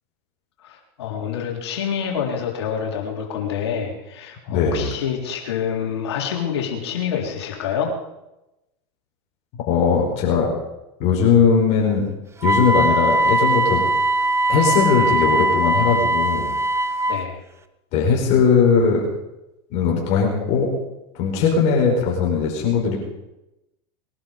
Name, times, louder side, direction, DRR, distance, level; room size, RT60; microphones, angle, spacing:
voice 1, 0.6-7.9 17.1-17.4, left 7 dB, 80° left, 1 dB, 3.9 m, -27 dB
voice 2, 4.5-4.9 9.6-10.5 11.0-12.0 12.4-13.8 14.5-16.5 17.9-19.0 19.7-20.7 21.1-23.0, left 6 dB, 55° left, -1 dB, 5.1 m, -19 dB
Wind instrument woodwind instrument, 12.4-17.2, right 1 dB, 20° right, 1.2 m, -20 dB
22.0 x 11.5 x 5.4 m, 0.94 s
hypercardioid pair, 100°, 14 cm